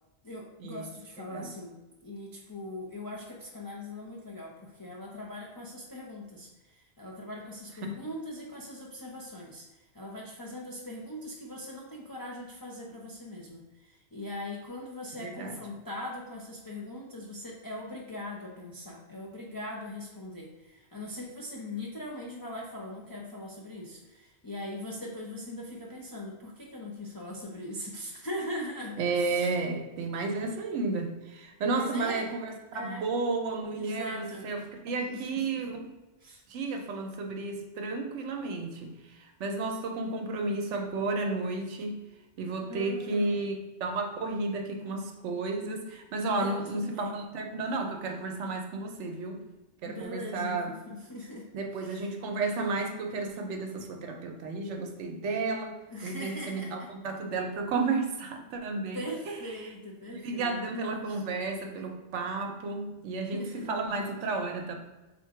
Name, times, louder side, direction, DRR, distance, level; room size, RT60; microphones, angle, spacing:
voice 1, 0.2-1.7 2.0-29.5 31.7-32.3 32.7-33.0 33.7-34.5 34.9-35.4 36.2-36.4 42.7-43.3 46.4-47.2 49.8-52.1 55.9-56.9 58.9-60.8 61.1-61.2 63.3-63.7, left 1 dB, 35° left, -3 dB, 0.3 m, -41 dB
voice 2, 15.2-15.6 29.0-35.8 36.5-38.9 39.4-42.0 42.4-49.4 49.8-50.7 51.5-55.8 56.0-59.4 60.2-64.8, right 3 dB, 75° right, 3 dB, 0.9 m, -32 dB
3.7 x 2.5 x 4.6 m, 1.1 s
omnidirectional pair, 1.2 m